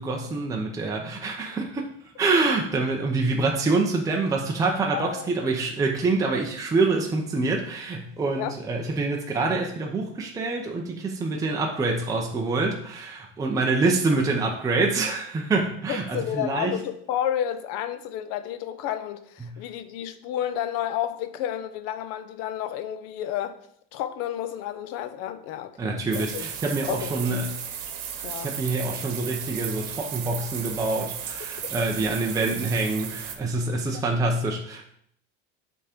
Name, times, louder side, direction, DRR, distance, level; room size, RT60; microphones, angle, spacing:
voice 1, 0.0-1.9 2.2-16.8 19.4-19.5 25.8-27.5 28.2-34.8, right 3 dB, 10° right, 0.6 m, -26 dB
voice 2, 4.9-5.2 8.4-8.6 15.9-23.6 23.9-26.4 26.9-27.4 28.2-28.5 31.8-31.9, left 11 dB, 60° left, 0.7 m, -31 dB
sound 1, 26.1-33.4, right 8 dB, 75° right, 1.1 m, -35 dB
6.9 x 3.7 x 5.0 m
cardioid pair, 150°, 29 cm